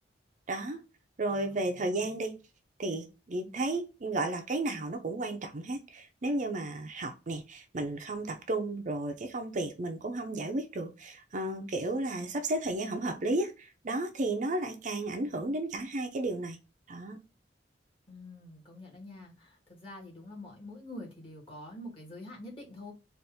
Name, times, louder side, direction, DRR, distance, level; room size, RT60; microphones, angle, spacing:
voice 1, 0.5-0.8 1.2-2.4 2.8-16.6 16.9-17.2, right 2 dB, 45° right, 0.6 m, -33 dB
voice 2, 1.3-2.2 18.1-22.9, left 1 dB, 30° left, 1.8 m, -46 dB
4.1 x 2.5 x 3.5 m
head